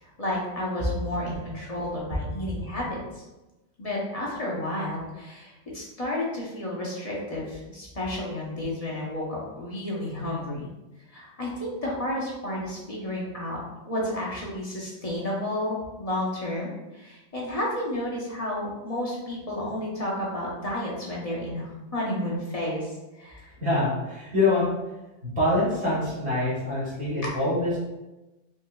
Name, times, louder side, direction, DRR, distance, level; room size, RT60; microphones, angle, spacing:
voice 1, 0.0-3.2 3.8-10.7 11.1-13.6 13.8-23.5 27.2-27.3, left 1 dB, 35° left, -5 dB, 0.8 m, -31 dB
voice 2, 23.6-24.6 25.2-27.8, left 2 dB, 65° right, -8 dB, 1.6 m, -25 dB
4.4 x 2.7 x 2.2 m, 1.0 s
omnidirectional pair, 1.2 m